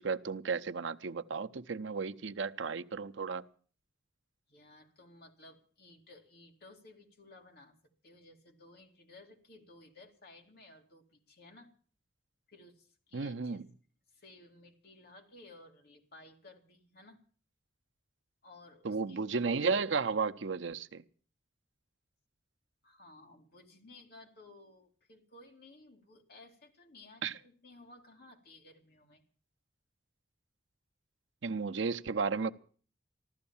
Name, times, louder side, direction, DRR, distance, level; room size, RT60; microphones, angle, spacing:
voice 1, 0.0-3.4 13.1-13.6 18.8-21.0 27.2-27.3 31.4-32.5, right 4 dB, 80° right, 0.7 m, -33 dB
voice 2, 4.5-7.7 8.0-11.7 12.5-13.6 14.1-17.2 18.4-19.2 22.8-29.2, left 2 dB, 55° left, 2.4 m, -57 dB
15.0 x 12.5 x 7.1 m
head